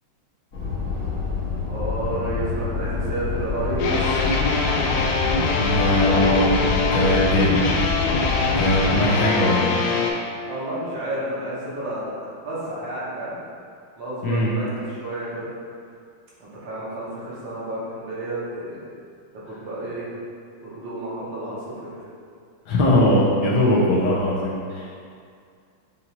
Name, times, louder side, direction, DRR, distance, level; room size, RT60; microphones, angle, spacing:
sound 1, 0.5-9.1, left 5 dB, 50° left, 1.3 m, -27 dB
voice 1, 1.7-4.4 10.5-13.4 14.0-15.5 16.4-18.8 19.3-20.1 20.6-22.0, right 1 dB, 65° right, -8 dB, 1.8 m, -31 dB
sound 2, 3.8-10.1, left 3 dB, 90° left, 1.5 m, -23 dB
voice 2, 5.5-7.6 8.6-9.7 14.2-14.5 22.7-25.0, left 1 dB, 65° left, -5 dB, 1.1 m, -21 dB
6.8 x 2.6 x 2.9 m, 2.3 s
omnidirectional pair, 2.3 m